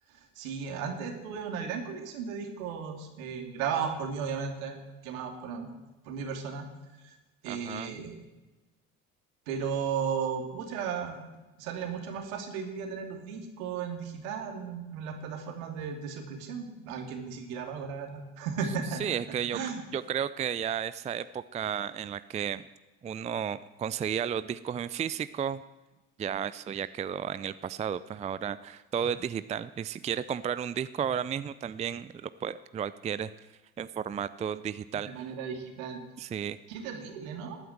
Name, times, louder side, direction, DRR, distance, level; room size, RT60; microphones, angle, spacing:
voice 1, 0.1-4.8 5.0-5.7 6.0-6.7 7.0-7.2 7.4-8.1 9.5-11.2 11.6-19.8 34.9-36.0 36.7-37.6, right 6 dB, 65° right, 4 dB, 2.6 m, -35 dB
voice 2, 7.5-8.0 19.0-19.6 19.9-22.7 23.0-25.6 26.2-33.3 33.8-35.3 36.2-36.6, right 8 dB, 15° right, 15 dB, 0.4 m, -33 dB
19.0 x 9.4 x 7.8 m, 1.1 s
figure-of-eight pair, 55°, 43 cm